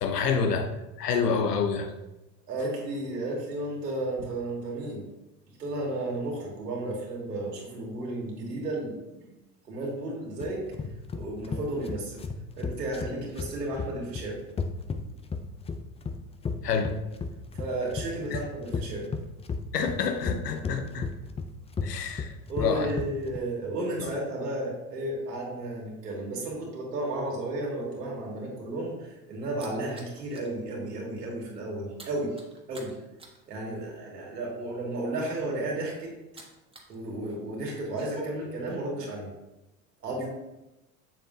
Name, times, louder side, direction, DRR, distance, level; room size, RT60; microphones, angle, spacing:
voice 1, 0.0-0.7 1.0-1.9 16.6-16.9 18.3-18.4 19.7-21.1 21.8-22.9 24.0-24.1, left 5 dB, 90° left, 7 dB, 0.9 m, -28 dB
voice 2, 2.5-5.1 5.5-9.3 9.6-10.7 11.1-12.2 12.5-14.4 17.6-19.1 22.5-32.4 32.7-33.0 33.5-36.4 36.9-39.3 40.0-40.3, right 1 dB, 90° right, -3 dB, 2.5 m, -33 dB
sound 1, 10.4-23.4, left 5 dB, 15° left, 0.5 m, -34 dB
sound 2, 29.0-30.6 30.9-31.1 31.4-37.0 37.2-38.2, right 3 dB, 10° right, 1.5 m, -49 dB
7.2 x 7.1 x 2.8 m, 0.97 s
hypercardioid pair, 85°, 47 cm